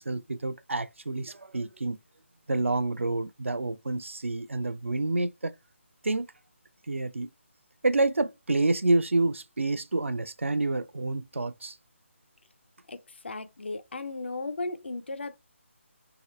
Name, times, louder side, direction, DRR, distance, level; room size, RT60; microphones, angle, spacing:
voice 1, 0.0-2.0 2.5-5.5 6.0-6.3 6.9-7.3 7.8-11.8, right 2 dB, 70° right, 0.4 m, -28 dB
voice 2, 12.9-15.4, left 3 dB, 55° left, 0.5 m, -36 dB
2.9 x 2.9 x 3.0 m
figure-of-eight pair, 150°, 7 cm